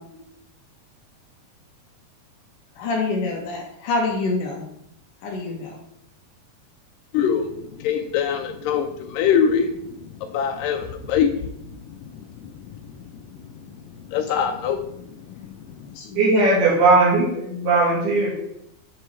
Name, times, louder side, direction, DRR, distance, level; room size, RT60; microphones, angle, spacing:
voice 1, 2.8-4.6 5.2-5.8 16.0-16.5, left 3 dB, 70° left, 0 dB, 2.3 m, -26 dB
voice 2, 7.1-7.5 7.8-9.7 10.2-11.5 12.4-12.5 14.1-15.0 15.4-15.6, left 7 dB, 85° left, 5 dB, 1.9 m, -23 dB
voice 3, 16.2-18.3, right 3 dB, 85° right, -4 dB, 4.0 m, -18 dB
9.7 x 3.7 x 4.3 m, 0.75 s
omnidirectional pair, 4.4 m